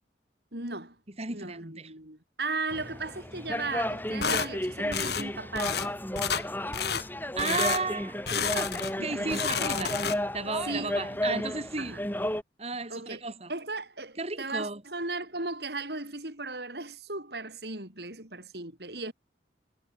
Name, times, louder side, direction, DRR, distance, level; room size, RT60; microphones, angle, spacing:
voice 1, 0.5-1.0 1.3-5.9 8.3-9.4 10.7-11.5 11.8-12.0 12.9-13.2 13.5-19.1, right 3 dB, 65° right, 7.6 m, -37 dB
voice 2, 1.2-1.9 7.4-8.2 9.0-10.0 10.3-12.0 12.6-13.5 14.2-14.8, right 3 dB, 35° right, 3.1 m, -33 dB
sound 1, 2.7-12.4, left 1 dB, 10° left, 5.4 m, -33 dB
sound 2, 4.2-4.5 4.9-5.3 5.6-5.9 6.2-6.5 6.7-7.1 7.4-7.8 8.3-9.0 9.2-10.4, left 6 dB, 65° left, 3.6 m, -30 dB
head